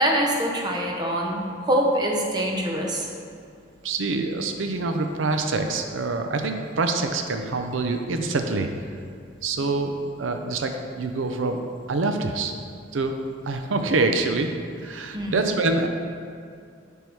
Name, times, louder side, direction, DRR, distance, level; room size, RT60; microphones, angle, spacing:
voice 1, 0.0-3.1 9.6-9.7 15.1-15.5, right 1 dB, 20° right, -1 dB, 0.8 m, -24 dB
voice 2, 3.8-8.7 9.4-11.6 11.9-12.5 12.9-13.2 13.4-14.5 14.8-15.9, right 3 dB, 85° right, 5 dB, 0.5 m, -25 dB
10.5 x 3.6 x 4.6 m, 2.4 s
head